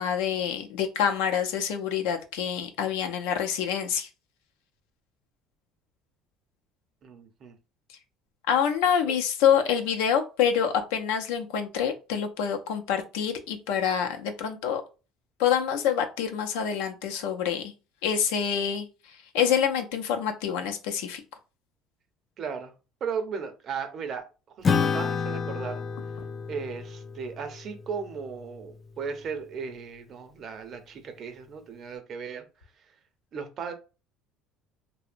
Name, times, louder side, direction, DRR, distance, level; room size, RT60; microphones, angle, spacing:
voice 1, 0.0-4.1 8.5-14.8 15.4-17.7 18.0-18.9 19.3-21.2, left 8 dB, 85° left, 0.5 m, -26 dB
voice 2, 7.0-7.6 9.1-9.2 22.4-22.7 23.0-24.3 24.6-25.8 26.5-32.4 32.8-32.9 33.3-33.7, right 6 dB, 50° right, 0.6 m, -36 dB
Acoustic guitar / Strum, 24.6-29.4, left 5 dB, 30° left, 0.3 m, -31 dB
2.8 x 2.0 x 2.5 m
supercardioid pair, 100°, 0 cm